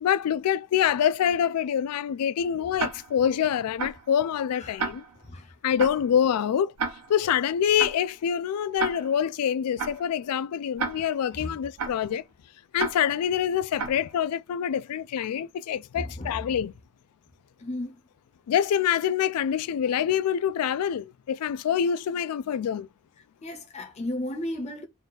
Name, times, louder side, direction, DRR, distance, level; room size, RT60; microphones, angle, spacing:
voice 1, 0.0-5.0 5.6-6.7 7.1-12.2 12.7-16.7 18.5-22.9, left 9 dB, 85° left, 0.3 m, -26 dB
Tick-tock, 2.8-3.3 3.8-4.1 4.8-5.3 5.8-6.1 6.8-7.3 7.8-8.1 8.8-9.3 9.8-10.1 10.8-11.3 11.8-12.1 12.8-13.3 13.8-14.1, right 5 dB, 85° right, 0.6 m, -33 dB
voice 2, 15.9-16.4 17.6-18.0 23.4-24.8, left 1 dB, 30° left, 0.6 m, -34 dB
3.9 x 2.3 x 4.0 m
head